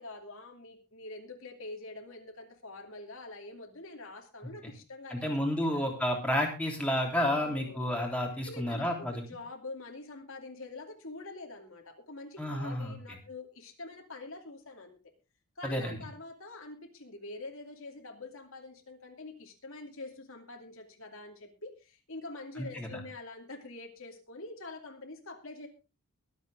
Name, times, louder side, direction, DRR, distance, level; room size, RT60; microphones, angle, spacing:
voice 1, 0.0-5.3 5.7-5.8 7.2-7.9 8.4-8.8 9.1-15.0 15.6-25.7, left 2 dB, 65° left, 2 dB, 2.6 m, -45 dB
voice 2, 5.1-9.2 12.4-13.0 15.6-16.0 22.6-23.0, left 1 dB, 5° left, 0 dB, 3.2 m, -31 dB
23.0 x 8.1 x 3.5 m, 0.30 s
head